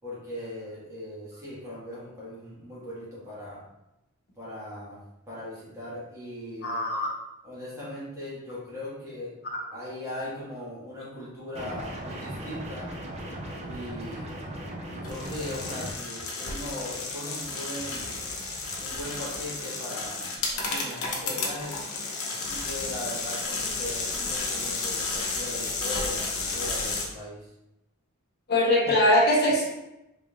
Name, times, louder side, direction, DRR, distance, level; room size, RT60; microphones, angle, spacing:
voice 1, 0.0-3.6 4.3-5.0 5.3-6.8 7.4-9.3 9.7-12.9 13.6-14.5 14.9-18.1 18.8-21.8 22.3-27.5, left 1 dB, 15° right, -9 dB, 1.5 m, -39 dB
voice 2, 6.6-7.1 28.5-29.6, left 1 dB, 45° left, -2 dB, 0.8 m, -21 dB
sound 1, 11.5-15.9, right 1 dB, 30° right, 0.5 m, -37 dB
sound 2, 15.0-27.0, left 3 dB, 80° left, 0.8 m, -32 dB
3.7 x 3.5 x 2.4 m, 0.90 s
head